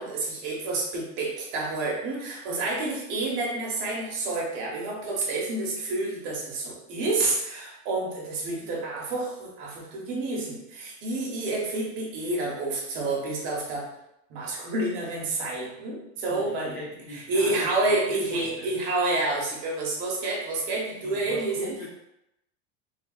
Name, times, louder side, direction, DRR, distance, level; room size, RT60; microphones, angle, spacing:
voice 1, 0.0-13.9 14.3-16.8 17.1-21.7, right 2 dB, 55° right, -3 dB, 1.0 m, -29 dB
voice 2, 16.3-18.7 21.0-21.9, left 1 dB, 60° left, -4 dB, 1.1 m, -41 dB
3.4 x 2.2 x 2.3 m, 0.85 s
supercardioid pair, 155°, 33 cm